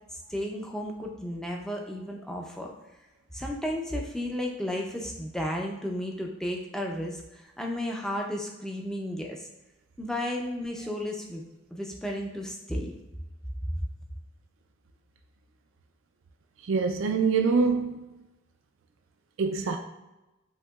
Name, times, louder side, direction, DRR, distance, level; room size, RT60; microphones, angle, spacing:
voice 1, 0.1-2.7 3.3-9.5 10.0-11.4 11.7-12.9, left 1 dB, 5° left, 0.5 m, -33 dB
voice 2, 16.6-18.1 19.4-19.8, right 4 dB, 75° right, 0.4 m, -25 dB
7.8 x 2.9 x 2.3 m
head